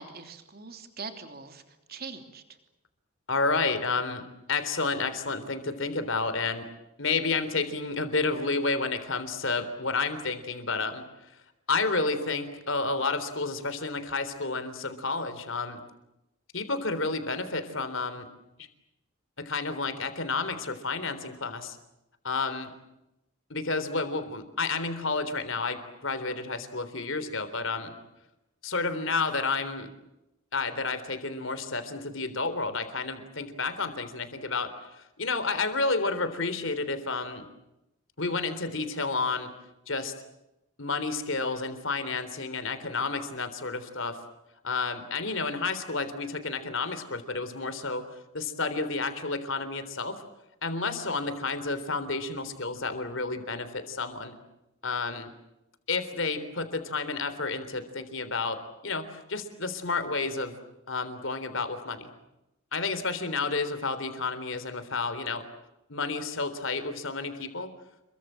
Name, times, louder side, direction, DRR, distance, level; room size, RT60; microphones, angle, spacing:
voice 1, 0.0-2.6, right 4 dB, 45° right, 6 dB, 3.1 m, -42 dB
voice 2, 3.3-6.6 7.0-11.3 11.7-15.8 16.5-18.3 18.6-18.7 19.4-21.8 22.2-22.7 23.5-28.0 28.6-29.9 30.5-37.5 38.2-39.5 39.9-40.1 40.8-44.2 44.6-48.0 48.3-50.2 50.6-54.3 54.8-55.3 55.9-60.5 60.9-62.1 62.7-65.4 65.9-67.7, left 3 dB, 60° left, 10 dB, 3.6 m, -30 dB
29.0 x 23.0 x 7.6 m, 0.92 s
head